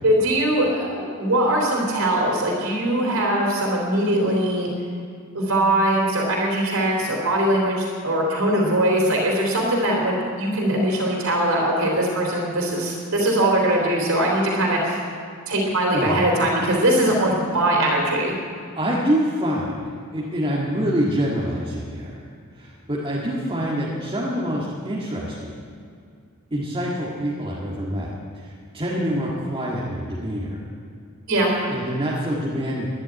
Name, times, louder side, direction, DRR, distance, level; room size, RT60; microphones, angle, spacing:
voice 1, 0.0-4.7 5.3-15.0 15.5-18.3 31.3-31.5, right 1 dB, 70° right, -1 dB, 3.4 m, -21 dB
voice 2, 18.8-19.8 20.1-22.2 22.5-25.6 26.5-30.6 31.7-32.9, equal, 25° right, -6 dB, 1.8 m, -26 dB
12.5 x 11.0 x 9.7 m, 2.3 s
head